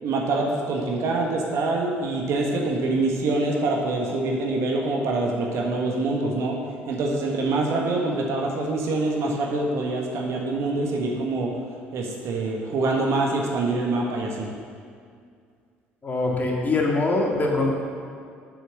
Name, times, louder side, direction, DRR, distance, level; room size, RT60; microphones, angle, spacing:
voice 1, 0.0-6.6 6.9-11.5 11.9-14.5, right 2 dB, 50° right, 0 dB, 1.4 m, -25 dB
voice 2, 16.0-17.7, left 2 dB, 30° left, -1 dB, 2.1 m, -23 dB
7.8 x 6.7 x 6.6 m, 2.2 s
figure-of-eight pair, 55°, 6 cm